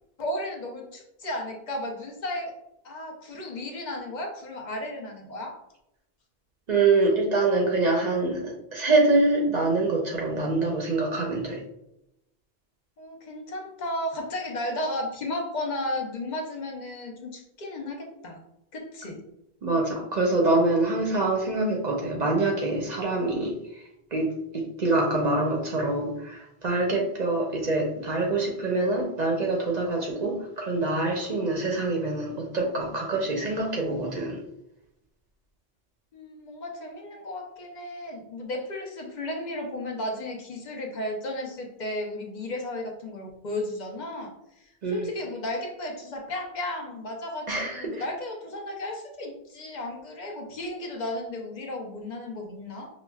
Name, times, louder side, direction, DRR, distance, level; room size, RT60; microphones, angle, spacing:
voice 1, 0.2-2.5 2.8-5.5 13.0-18.4 18.7-19.2 36.1-52.9, left 1 dB, 50° left, 1 dB, 0.8 m, -34 dB
voice 2, 6.7-11.6 19.6-34.4 44.8-45.1 47.5-48.0, right 2 dB, 50° right, 0 dB, 0.6 m, -25 dB
5.6 x 2.1 x 2.3 m, 0.85 s
omnidirectional pair, 1.1 m